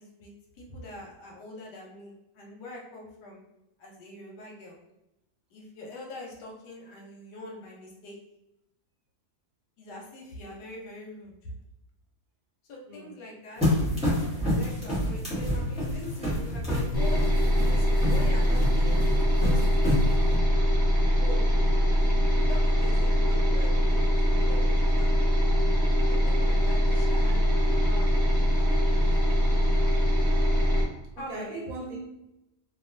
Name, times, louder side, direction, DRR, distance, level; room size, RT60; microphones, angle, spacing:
voice 1, 0.0-3.4 3.8-4.8 5.5-8.2 9.8-11.5 12.7-13.6 14.4-19.7 21.1-21.4 21.9-25.4 26.1-29.0 31.2-31.6, left 1 dB, 85° left, -1 dB, 1.3 m, -44 dB
sound 1, 13.6-20.4, left 1 dB, 5° right, 0.8 m, -29 dB
sound 2, 16.9-30.8, equal, 25° left, 1.0 m, -23 dB
voice 2, 31.2-32.0, right 2 dB, 70° right, -1 dB, 0.9 m, -39 dB
2.8 x 2.2 x 2.5 m, 0.89 s
omnidirectional pair, 1.7 m